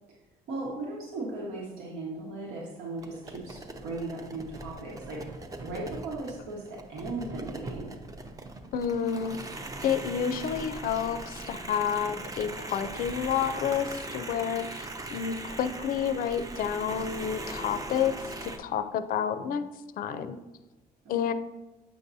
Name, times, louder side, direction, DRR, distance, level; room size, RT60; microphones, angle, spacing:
voice 1, 0.5-5.3 5.6-7.9 19.2-19.6 21.0-21.3, right 2 dB, 90° right, -4 dB, 1.4 m, -37 dB
sound 1, 3.0-18.6, right 2 dB, 20° right, 0.6 m, -40 dB
voice 2, 8.7-9.4 9.8-18.1 18.4-19.6 20.0-20.4 21.1-21.3, left 8 dB, 60° left, 11 dB, 0.4 m, -29 dB
7.7 x 5.3 x 2.7 m, 1.1 s
cardioid pair, 110°, 17 cm